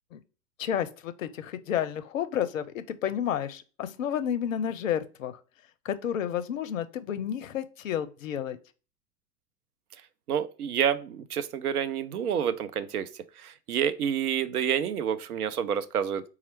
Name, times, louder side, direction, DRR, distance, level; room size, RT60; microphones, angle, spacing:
voice 1, 0.6-5.4 5.8-8.6, left 9 dB, 55° left, 0.5 m, -31 dB
voice 2, 10.3-13.1 13.4-16.2, right 8 dB, 70° right, 0.5 m, -28 dB
4.1 x 2.4 x 4.4 m
figure-of-eight pair, 95°, 48 cm